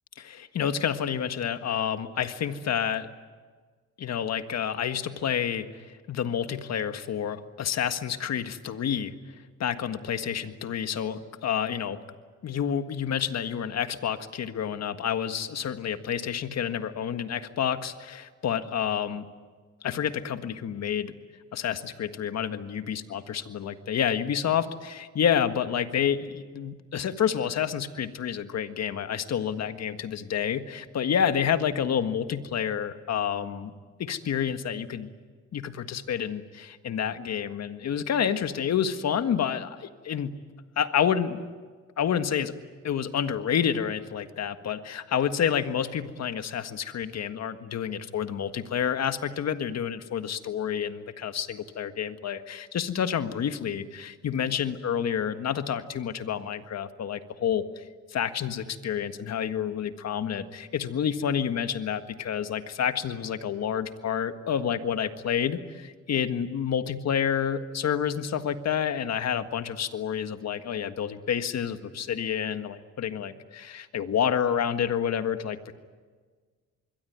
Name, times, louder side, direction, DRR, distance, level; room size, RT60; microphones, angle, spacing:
voice 1, 0.2-3.1 4.0-9.2 9.6-12.0 12.4-19.3 19.8-21.1 21.5-33.7 34.0-35.1 35.5-40.3 40.8-41.4 42.0-42.5 42.8-57.9 58.1-75.7, left 8 dB, 60° left, 9 dB, 1.7 m, -29 dB
25.5 x 22.5 x 9.5 m, 1.5 s
cardioid pair, 90°, 30 cm